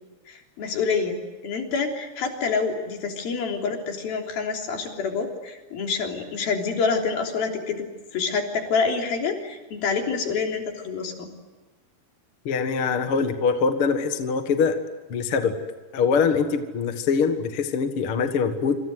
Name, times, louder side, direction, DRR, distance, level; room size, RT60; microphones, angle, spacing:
voice 1, 0.3-1.2 1.4-7.9 8.1-11.3, left 5 dB, 65° left, 2 dB, 5.2 m, -27 dB
voice 2, 12.5-14.8 15.1-15.5 15.9-18.8, left 5 dB, 45° left, 7 dB, 2.0 m, -23 dB
27.0 x 26.5 x 8.0 m, 1.2 s
omnidirectional pair, 4.6 m